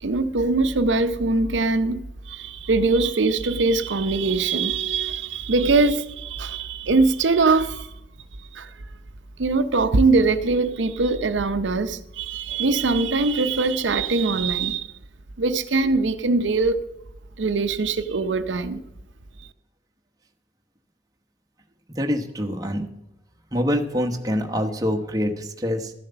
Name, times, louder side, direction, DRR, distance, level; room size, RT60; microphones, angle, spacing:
voice 1, 0.0-7.9 8.5-8.7 9.4-14.9 15.4-16.8 17.4-18.8, right 3 dB, 85° right, 0.7 m, -22 dB
voice 2, 21.9-22.9 23.5-25.9, equal, 20° right, 1.0 m, -25 dB
13.0 x 7.3 x 6.9 m
head